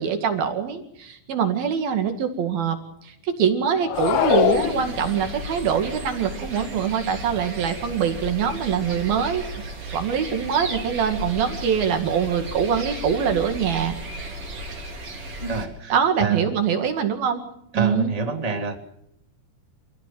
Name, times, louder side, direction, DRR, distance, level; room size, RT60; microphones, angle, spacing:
voice 1, 0.0-2.8 3.0-9.4 9.9-14.3 15.9-17.4 17.7-18.1, right 7 dB, 55° right, 6 dB, 3.5 m, -24 dB
sound 1, 3.8-5.4, left 13 dB, 80° left, 3.8 m, -23 dB
sound 2, 3.9-15.7, right 1 dB, 30° right, 4.4 m, -35 dB
voice 2, 15.4-15.9 16.2-16.5 17.7-18.7, right 4 dB, 15° right, 4 dB, 1.3 m, -26 dB
28.5 x 17.0 x 7.7 m, 0.78 s
omnidirectional pair, 5.8 m